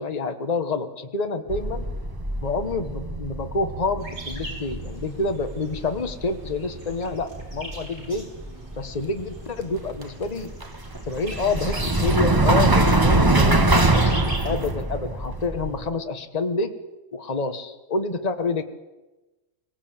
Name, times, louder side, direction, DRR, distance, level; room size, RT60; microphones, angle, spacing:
voice 1, 0.0-1.9 2.4-8.3 8.8-10.5 11.1-16.7 17.1-18.6, left 3 dB, 30° left, 7 dB, 1.4 m, -28 dB
sound 1, 1.5-15.9, right 2 dB, 20° right, 1.1 m, -24 dB
sound 2, 4.0-14.7, right 1 dB, 60° right, 6.3 m, -43 dB
23.0 x 17.5 x 8.9 m, 1.1 s
omnidirectional pair, 1.4 m